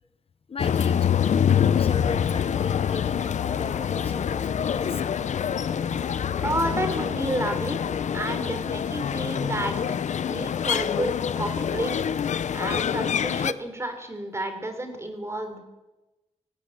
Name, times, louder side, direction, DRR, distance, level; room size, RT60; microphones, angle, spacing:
voice 1, 0.5-5.0 10.4-10.5, left 5 dB, 55° left, 11 dB, 1.0 m, -37 dB
sound 1, 0.6-13.5, left 8 dB, 85° left, 0.7 m, -26 dB
sound 2, 2.2-8.7, equal, 55° right, 5.8 m, -47 dB
voice 2, 6.4-7.8 8.1-9.7 10.3-11.1 11.4-11.9 12.5-15.6, right 1 dB, 25° right, 7 dB, 3.5 m, -30 dB
19.0 x 15.5 x 8.7 m, 1.1 s
wide cardioid pair, 120°, 12 cm